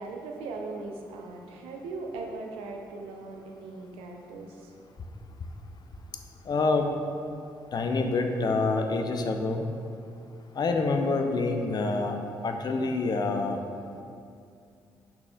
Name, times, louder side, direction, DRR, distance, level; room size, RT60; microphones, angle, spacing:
voice 1, 0.0-4.7, right 3 dB, 70° right, 2 dB, 0.5 m, -39 dB
voice 2, 6.5-6.9 7.7-9.6 10.5-12.2 12.4-13.6, left 3 dB, 45° left, 4 dB, 0.5 m, -26 dB
5.6 x 4.1 x 2.3 m, 2.4 s
hypercardioid pair, 40°, 10 cm